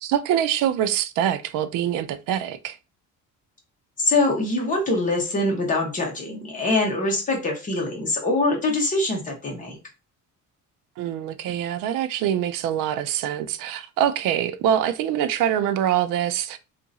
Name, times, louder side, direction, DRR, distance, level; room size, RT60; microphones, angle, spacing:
voice 1, 0.0-2.8 11.0-16.6, right 10 dB, 70° right, 0.5 m, -24 dB
voice 2, 4.0-9.8, left 2 dB, 25° left, 1.0 m, -23 dB
2.8 x 2.5 x 3.9 m
cardioid pair, 175°, 34 cm